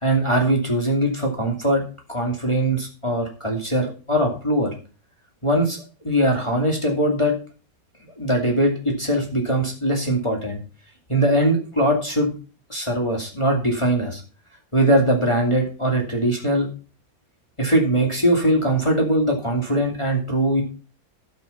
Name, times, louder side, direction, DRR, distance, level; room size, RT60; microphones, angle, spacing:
voice 1, 0.0-1.8 2.1-4.7 5.4-7.4 8.2-10.6 11.1-12.3 12.7-14.2 14.7-16.7 17.6-20.6, right 1 dB, 15° left, 0 dB, 2.5 m, -21 dB
12.5 x 6.2 x 5.7 m, 0.36 s
omnidirectional pair, 2.0 m